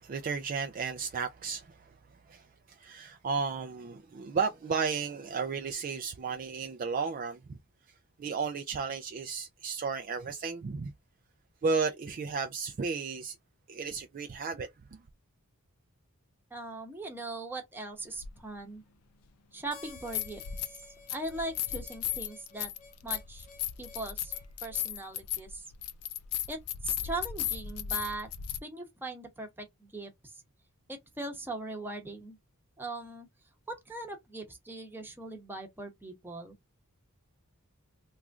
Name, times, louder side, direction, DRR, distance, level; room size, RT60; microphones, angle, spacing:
voice 1, 0.0-1.9 2.3-7.6 8.2-10.9 11.6-13.3 13.7-14.7, right 5 dB, 40° right, 0.3 m, -33 dB
voice 2, 16.5-18.8 19.5-20.8 21.1-22.7 23.0-23.5 23.8-24.3 24.6-25.6 26.5-26.6 26.8-28.3 28.6-30.3 30.9-32.4 32.8-33.3 33.7-36.5, right 2 dB, 10° right, 0.9 m, -40 dB
sound 1, 18.2-18.3 19.9-20.8 21.1-28.6, left 11 dB, 90° left, 0.5 m, -36 dB
Harmonica, 19.7-24.9, left 4 dB, 35° left, 0.7 m, -54 dB
3.0 x 2.4 x 3.5 m
head